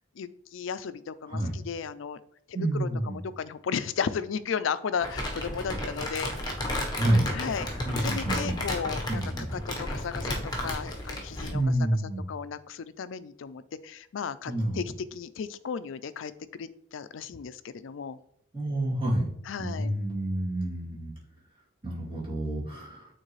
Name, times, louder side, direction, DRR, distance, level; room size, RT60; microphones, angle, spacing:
voice 1, 0.2-2.2 2.5-6.3 7.3-7.7 8.0-9.2 9.5-12.0 12.3-18.2 19.4-19.9, left 6 dB, 70° left, 14 dB, 0.4 m, -35 dB
voice 2, 2.5-3.2 6.9-7.3 7.8-8.6 9.1-9.6 11.5-12.2 14.5-14.8 18.5-19.3 19.6-21.1 21.8-23.1, right 1 dB, 25° right, -7 dB, 2.8 m, -28 dB
Crumpling crinkling, 5.0-11.6, left 1 dB, 20° left, 1.0 m, -33 dB
9.0 x 3.9 x 3.2 m, 0.71 s
head